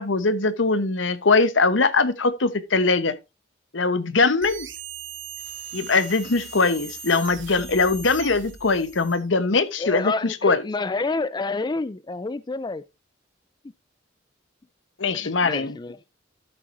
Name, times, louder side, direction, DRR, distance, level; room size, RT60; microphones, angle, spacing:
voice 1, 0.0-3.1 3.7-4.7 5.7-10.6 15.0-15.8, left 3 dB, 80° left, 1.0 m, -21 dB
sound 1, 4.4-9.3, right 6 dB, 90° right, 1.8 m, -39 dB
voice 2, 9.8-12.8 15.1-16.0, left 3 dB, 20° left, 0.4 m, -28 dB
12.5 x 7.5 x 2.6 m
head